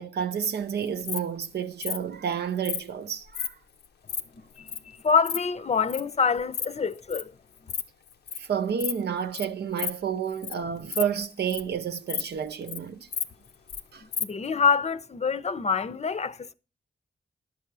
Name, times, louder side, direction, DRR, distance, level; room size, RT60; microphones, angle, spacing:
voice 1, 0.0-3.5 8.4-13.1 13.9-14.0, right 7 dB, 85° right, 0.7 m, -30 dB
Insect, 0.8-1.2 1.8-2.0 2.6-2.8 3.3-3.5 3.8-4.2 4.7-4.8 5.0-5.4 5.9-6.0 6.4-6.7 6.9-7.2 7.6-7.8 8.1-8.4 8.8-9.0 9.3-9.4 9.8-9.9 10.3-10.5 10.8-11.7 12.1-12.2 12.5-12.8 13.1-13.8 14.1-14.2, left 7 dB, 90° left, 0.6 m, -31 dB
voice 2, 4.3-7.3 7.6-7.7 14.0-16.5, left 5 dB, 40° left, 0.6 m, -26 dB
10.5 x 6.7 x 4.6 m
cardioid pair, 55°, 17 cm